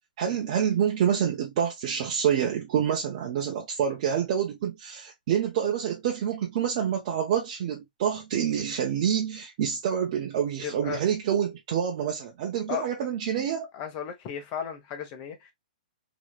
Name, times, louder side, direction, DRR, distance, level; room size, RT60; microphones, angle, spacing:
voice 1, 0.2-13.7, right 8 dB, 50° right, 0.9 m, -27 dB
voice 2, 10.6-11.0 12.7-12.8 13.7-15.5, left 8 dB, 35° left, 1.2 m, -35 dB
3.2 x 3.0 x 2.3 m
hypercardioid pair, 130°, 5 cm